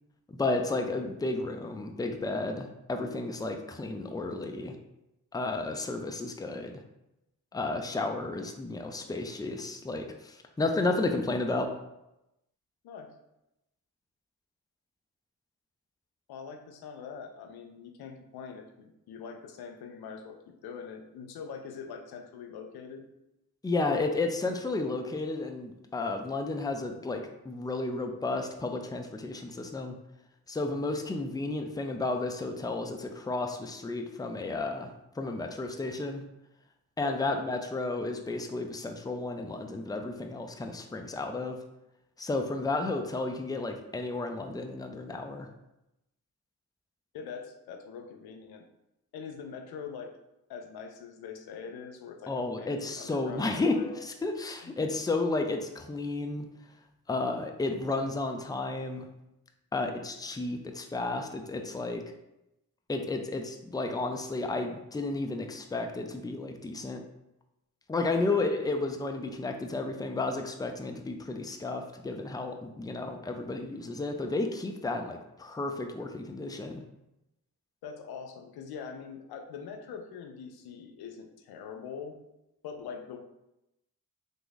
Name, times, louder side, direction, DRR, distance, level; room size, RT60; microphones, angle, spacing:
voice 1, 0.3-4.8 5.3-6.8 7.5-11.7 23.6-30.0 30.5-36.2 37.0-41.6 42.2-45.5 52.3-56.5 57.1-59.1 59.7-62.0 62.9-67.0 67.9-76.8, left 2 dB, 10° left, 4 dB, 0.5 m, -32 dB
voice 2, 16.3-23.1 37.0-37.5 47.1-48.6 49.1-50.1 50.5-54.0 54.6-54.8 68.2-68.4 77.8-82.2 82.6-83.2, left 6 dB, 85° left, 4 dB, 0.5 m, -43 dB
3.4 x 2.0 x 3.9 m, 0.88 s
supercardioid pair, 40°, 37 cm